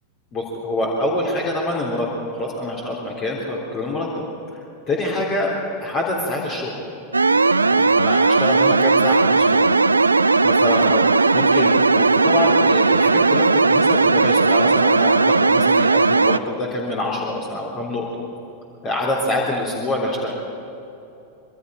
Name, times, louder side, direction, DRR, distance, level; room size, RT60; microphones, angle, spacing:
voice 1, 0.3-4.1 4.9-5.5 5.8-6.7 7.7-9.7 10.4-18.1 18.8-20.3, left 1 dB, 35° left, -2 dB, 3.7 m, -25 dB
sound 1, 7.1-16.4, right 3 dB, 80° right, 0.5 m, -16 dB
26.0 x 23.5 x 5.0 m, 2.9 s
figure-of-eight pair, 90°, 0 cm